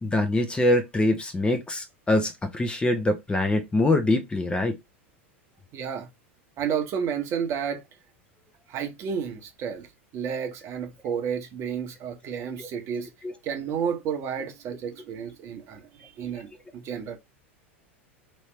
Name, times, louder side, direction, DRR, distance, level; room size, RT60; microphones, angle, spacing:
voice 1, 0.0-4.8 12.6-12.7 13.2-13.3, left 2 dB, 15° left, 0.7 m, -24 dB
voice 2, 5.7-6.1 6.6-7.8 8.7-9.9 10.1-13.1 13.4-17.2, right 7 dB, 40° right, 1.0 m, -31 dB
3.1 x 2.8 x 3.3 m
hypercardioid pair, 90°, 7 cm